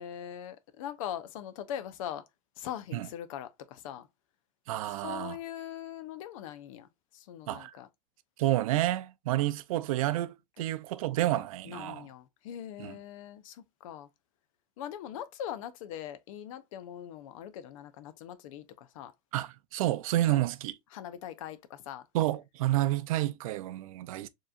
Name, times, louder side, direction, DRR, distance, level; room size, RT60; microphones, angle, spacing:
voice 1, 0.0-2.2 2.6-4.1 5.0-7.9 11.6-14.1 14.8-19.1 20.3-20.4 20.9-22.1, left 10 dB, 75° left, 0.6 m, -41 dB
voice 2, 4.7-5.4 7.5-7.7 8.4-12.1 12.8-13.0 19.3-20.8 22.1-24.3, right 15 dB, 85° right, 0.5 m, -30 dB
4.5 x 3.0 x 2.4 m
supercardioid pair, 115°, 17 cm